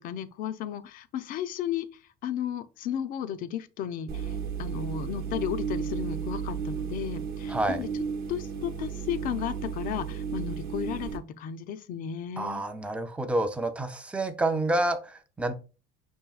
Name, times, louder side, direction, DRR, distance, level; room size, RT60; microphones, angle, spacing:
voice 1, 0.0-1.9 2.2-7.9 8.3-12.6, left 9 dB, 50° left, 0.4 m, -34 dB
sound 1, 4.1-11.2, right 7 dB, 60° right, 0.8 m, -33 dB
voice 2, 7.5-7.8 12.4-15.6, right 2 dB, 5° right, 0.4 m, -28 dB
5.4 x 2.7 x 2.3 m
cardioid pair, 125°, 18 cm